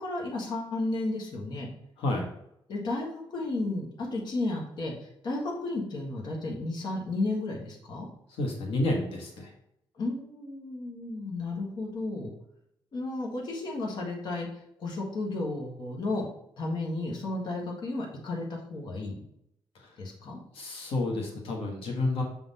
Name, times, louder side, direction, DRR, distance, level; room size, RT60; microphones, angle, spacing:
voice 1, 0.0-1.7 2.7-8.1 10.0-12.3 12.9-14.5 14.8-16.2 16.6-19.2 20.0-20.4, left 2 dB, 55° left, -2 dB, 1.6 m, -33 dB
voice 2, 2.0-2.3 8.3-9.5 19.7-19.9 20.5-22.2, left 2 dB, 85° left, 0 dB, 1.5 m, -30 dB
6.7 x 3.8 x 4.2 m, 0.77 s
cardioid pair, 160°, 9 cm